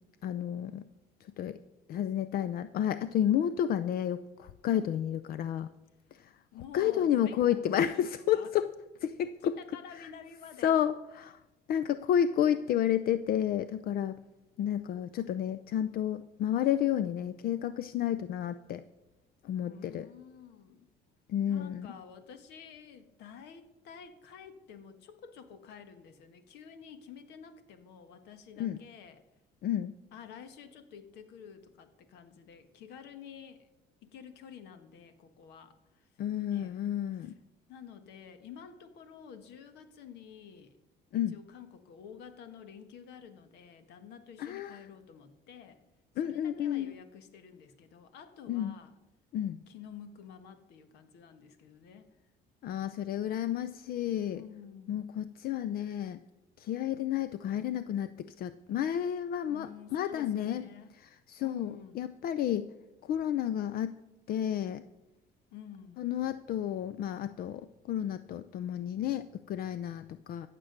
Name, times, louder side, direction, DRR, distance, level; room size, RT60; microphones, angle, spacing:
voice 1, 0.2-0.8 1.4-1.6 1.9-5.7 6.2-6.3 6.7-8.7 9.0-9.6 9.9-10.1 10.6-11.4 11.7-14.2 14.6-18.8 19.4-20.1 21.3-21.9 28.6-28.8 29.6-29.9 36.2-37.3 41.1-41.4 44.4-44.8 46.2-46.9 48.5-48.7 49.3-49.6 52.6-54.4 54.9-56.2 56.6-60.6 61.0-62.7 63.1-63.9 64.3-64.8 66.0-70.5, left 10 dB, 60° left, 14 dB, 0.5 m, -31 dB
voice 2, 6.5-8.5 9.4-10.8 19.6-20.9 21.4-29.2 30.1-33.7 34.0-36.1 36.5-36.8 37.2-37.3 37.7-40.7 41.3-45.8 46.2-48.9 49.7-52.1 54.3-55.1 59.5-60.9 61.4-62.0 65.5-66.0, left 7 dB, 85° left, 10 dB, 1.4 m, -50 dB
15.0 x 7.5 x 6.6 m, 1.0 s
cardioid pair, 110°, 17 cm